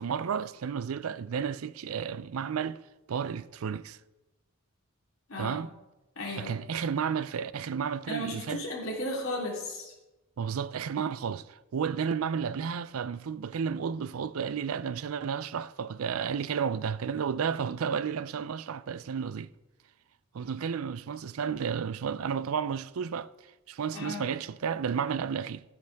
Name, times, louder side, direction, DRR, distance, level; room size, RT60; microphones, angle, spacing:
voice 1, 0.0-2.8 3.1-4.0 5.4-5.7 6.4-8.6 10.4-19.5 20.3-23.3 23.7-25.6, right 7 dB, 90° right, 0.4 m, -32 dB
voice 2, 5.3-5.6 6.1-6.6 8.1-9.9 23.9-24.3, left 1 dB, 80° left, 3.5 m, -35 dB
14.5 x 9.3 x 3.5 m
head